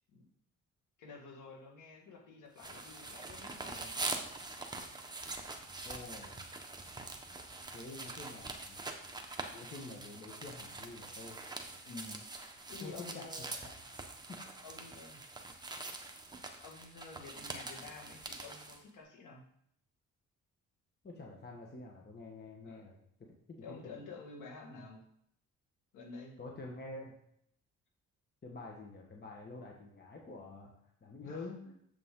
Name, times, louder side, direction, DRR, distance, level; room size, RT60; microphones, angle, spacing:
voice 1, 1.0-4.0 11.8-12.3 12.7-13.6 14.6-15.3 16.5-19.4 22.6-22.9 23.6-25.0 25.9-26.4 31.2-31.5, left 4 dB, 85° left, 1 dB, 2.0 m, -50 dB
sound 1, 2.6-18.8, right 2 dB, 15° right, 1.2 m, -44 dB
voice 2, 5.8-6.4 7.7-8.8 9.5-11.4 12.8-13.2 13.6-14.0 14.3-14.4 21.0-23.0 23.5-23.9 24.8-24.9 26.4-27.1 28.4-30.7 31.0-31.6, left 3 dB, 35° left, -1 dB, 1.6 m, -47 dB
7.5 x 7.0 x 3.8 m, 0.70 s
cardioid pair, 90°, 30 cm